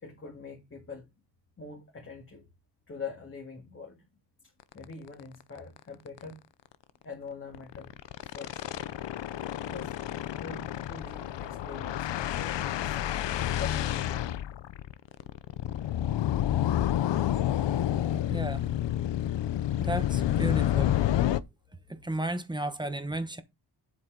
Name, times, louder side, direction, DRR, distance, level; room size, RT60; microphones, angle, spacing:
voice 1, 0.0-1.1 1.6-2.5 2.9-4.0 4.7-6.5 7.0-7.9 8.2-8.7 9.6-9.9 10.4-13.2 13.6-14.1, left 5 dB, 30° left, 2.1 m, -43 dB
sound 1, 4.7-4.8 5.2-5.3 5.6-5.8 6.1-6.2 7.5-21.4, left 12 dB, 85° left, 0.7 m, -29 dB
voice 2, 18.3-18.7 19.8-21.0 21.9-23.4, right 1 dB, 10° right, 1.0 m, -33 dB
8.2 x 8.0 x 3.8 m
wide cardioid pair, 180°, 42 cm